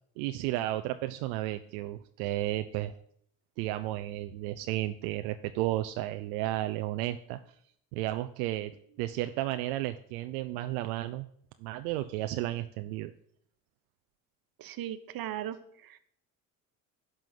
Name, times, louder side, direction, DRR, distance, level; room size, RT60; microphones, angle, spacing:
voice 1, 0.2-2.9 3.6-7.4 7.9-11.3 11.6-13.1, right 15 dB, 80° right, 10 dB, 0.6 m, -33 dB
voice 2, 14.6-15.6 15.8-16.0, right 12 dB, 55° right, 12 dB, 1.0 m, -37 dB
11.5 x 3.9 x 7.5 m, 0.66 s
hypercardioid pair, 60°, 42 cm